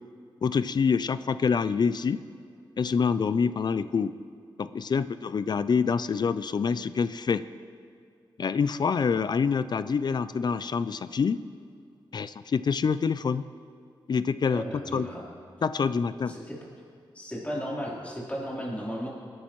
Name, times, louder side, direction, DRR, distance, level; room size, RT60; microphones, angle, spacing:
voice 1, 0.4-2.2 2.8-4.1 4.6-7.4 8.4-11.4 12.1-13.4 14.1-14.6 14.9-15.1 15.6-16.3, left 5 dB, 50° left, 14 dB, 0.4 m, -26 dB
voice 2, 14.4-15.3 16.3-16.6 17.1-19.1, equal, 15° left, -5 dB, 3.6 m, -35 dB
20.0 x 11.0 x 3.1 m, 2.4 s
wide cardioid pair, 90°, 9 cm